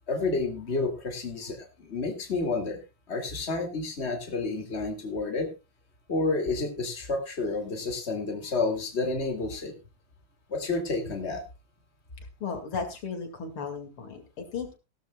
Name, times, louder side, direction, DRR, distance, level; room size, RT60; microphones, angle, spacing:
voice 1, 0.1-2.8 3.1-5.5 6.1-9.7 10.5-11.4, left 3 dB, 30° left, 4 dB, 2.6 m, -30 dB
voice 2, 12.4-14.8, left 5 dB, 75° left, 6 dB, 3.1 m, -35 dB
17.5 x 13.0 x 2.3 m, 0.27 s
omnidirectional pair, 2.4 m